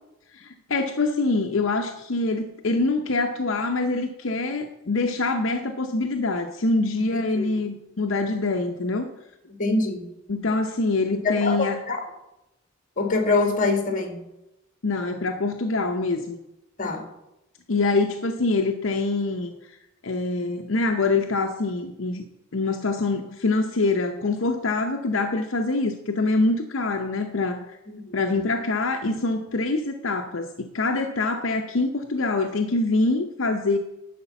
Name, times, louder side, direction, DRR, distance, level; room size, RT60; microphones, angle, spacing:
voice 1, 0.3-9.1 10.3-11.8 14.8-16.4 17.7-19.8 20.0-22.2 22.5-27.8 28.1-33.8, left 3 dB, 70° left, 4 dB, 0.8 m, -25 dB
voice 2, 9.6-10.1 11.1-12.0 13.0-14.1 16.8-17.0 27.9-28.1, left 3 dB, 40° left, 5 dB, 1.8 m, -24 dB
11.0 x 5.1 x 7.0 m, 0.91 s
head